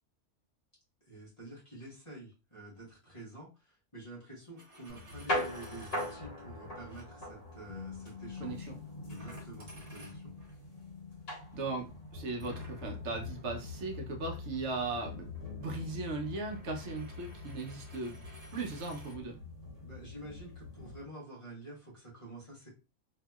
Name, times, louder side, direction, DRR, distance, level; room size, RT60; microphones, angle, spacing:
voice 1, 1.0-8.7 9.1-10.3 19.8-22.7, right 1 dB, 25° left, -5 dB, 1.1 m, -49 dB
Coin (dropping), 4.4-6.2 6.8-7.0 9.1-10.5 12.4-19.2, equal, 35° right, 0.9 m, -56 dB
sound 1, 4.9-21.0, left 2 dB, 55° left, 1.4 m, -42 dB
voice 2, 8.4-8.8 11.5-15.3 15.6-18.1 18.5-19.4, right 3 dB, 70° right, 2 dB, 1.0 m, -38 dB
2.8 x 2.7 x 2.2 m, 0.30 s
omnidirectional pair, 1.2 m